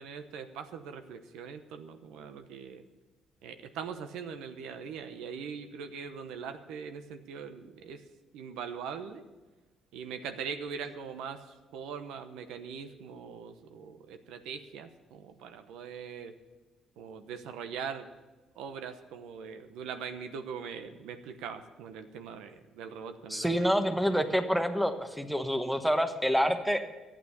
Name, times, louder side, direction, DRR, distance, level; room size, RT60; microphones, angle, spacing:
voice 1, 0.0-2.8 3.4-8.0 8.3-9.2 9.9-11.4 11.7-16.3 17.0-18.1 18.6-23.7, right 6 dB, 85° right, 8 dB, 0.9 m, -41 dB
voice 2, 23.3-26.8, equal, ahead, 8 dB, 1.1 m, -27 dB
11.5 x 8.8 x 7.0 m, 1.2 s
cardioid pair, 95°, 0 cm